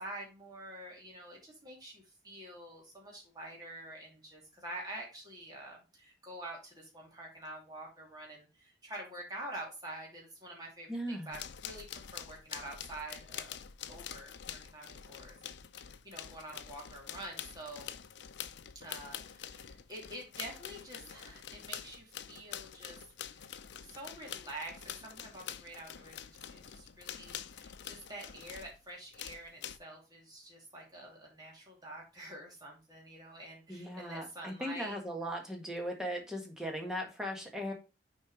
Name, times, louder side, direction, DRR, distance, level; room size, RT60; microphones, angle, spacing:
voice 1, 0.0-13.6 13.9-15.5 16.0-17.9 18.7-23.0 23.3-23.4 23.8-35.0, right 1 dB, 20° right, -2 dB, 2.9 m, -47 dB
voice 2, 10.9-11.3 33.7-37.7, equal, 5° right, 1 dB, 1.6 m, -38 dB
sound 1, 11.3-28.8 29.1-29.8, left 9 dB, 85° left, 0.5 m, -46 dB
6.4 x 4.6 x 4.9 m, 0.29 s
head